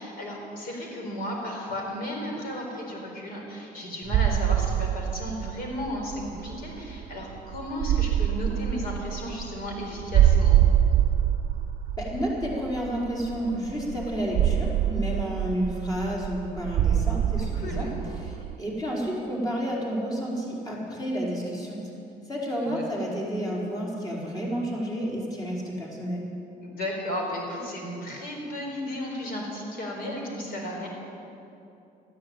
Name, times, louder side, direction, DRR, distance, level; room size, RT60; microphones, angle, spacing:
voice 1, 0.0-10.7 17.5-17.9 22.6-22.8 26.6-30.9, left 1 dB, 60° left, 0 dB, 4.4 m, -34 dB
sound 1, 4.1-18.6, right 10 dB, 55° right, 0.7 m, -25 dB
voice 2, 12.0-17.9 18.2-21.8 22.3-26.3, equal, 20° left, -4 dB, 4.5 m, -30 dB
13.5 x 10.5 x 8.9 m, 2.8 s
cardioid pair, 110°, 17 cm